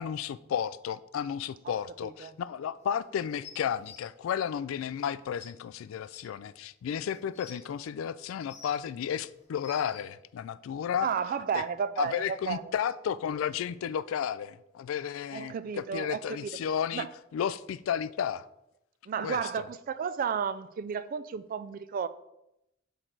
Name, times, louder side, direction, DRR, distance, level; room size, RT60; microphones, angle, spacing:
voice 1, 0.0-11.1 11.5-11.6 12.0-17.1 17.3-18.4 19.2-19.6, left 8 dB, 75° left, 0.3 m, -33 dB
voice 2, 1.7-2.3 11.0-12.7 15.3-16.5 16.9-17.1 19.1-22.1, right 7 dB, 45° right, 0.3 m, -33 dB
Dish soap whistle, 3.4-4.0 5.0-5.1 5.4-5.5 6.1-6.2 7.0-7.6 8.3-8.9 9.4-10.0 11.0-11.1, left 6 dB, 35° left, 0.9 m, -48 dB
6.3 x 4.4 x 3.9 m
head